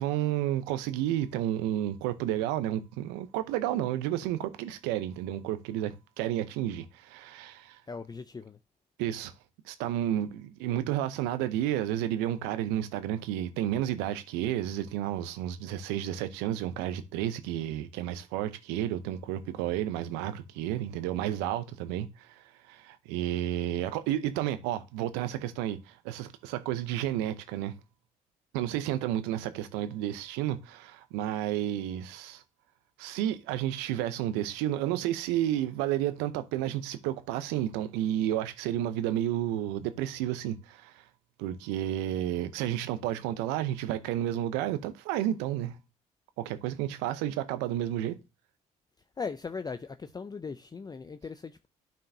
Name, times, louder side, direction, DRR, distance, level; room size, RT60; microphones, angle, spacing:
voice 1, 0.0-7.8 9.0-9.3 9.7-27.7 28.5-32.4 33.0-41.0 41.4-45.8 46.4-48.2, right 12 dB, 80° right, 0.7 m, -31 dB
voice 2, 7.9-8.6 49.2-51.7, left 5 dB, 25° left, 0.5 m, -39 dB
11.5 x 4.5 x 2.7 m
hypercardioid pair, 50°, 18 cm